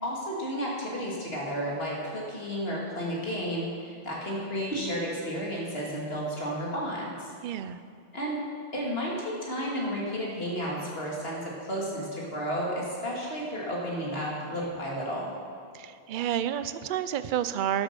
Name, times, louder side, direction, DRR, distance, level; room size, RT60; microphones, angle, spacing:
voice 1, 0.0-7.3 8.1-8.4 8.7-15.3, equal, 60° left, -4 dB, 2.7 m, -32 dB
voice 2, 7.4-7.8 15.7-17.8, right 10 dB, 55° right, 12 dB, 0.6 m, -30 dB
11.5 x 8.0 x 6.8 m, 2.3 s
omnidirectional pair, 1.2 m